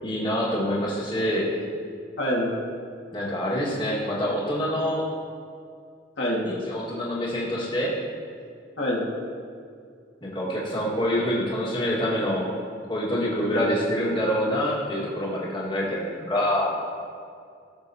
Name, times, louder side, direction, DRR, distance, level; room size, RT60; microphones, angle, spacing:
voice 1, 0.0-1.5 3.1-5.0 6.4-8.0 10.2-12.5 12.9-16.7, equal, 25° left, -5 dB, 1.6 m, -26 dB
voice 2, 2.2-2.5 6.2-6.4 8.8-9.0 13.5-13.7, left 1 dB, 80° left, -4 dB, 1.8 m, -25 dB
15.5 x 6.6 x 2.8 m, 2.3 s
head